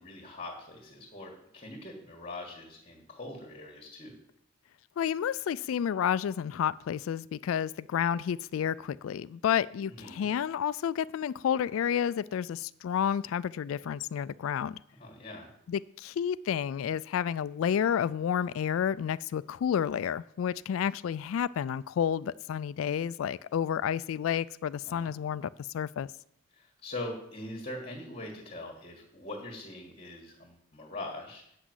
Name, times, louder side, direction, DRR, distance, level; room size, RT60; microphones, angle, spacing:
voice 1, 0.0-4.2 10.0-10.3 15.0-15.5 24.9-25.1 26.5-31.4, left 2 dB, 35° left, -3 dB, 1.7 m, -42 dB
voice 2, 5.0-14.8 15.7-26.1, left 8 dB, 85° left, 17 dB, 0.3 m, -30 dB
8.3 x 6.1 x 7.9 m, 0.72 s
head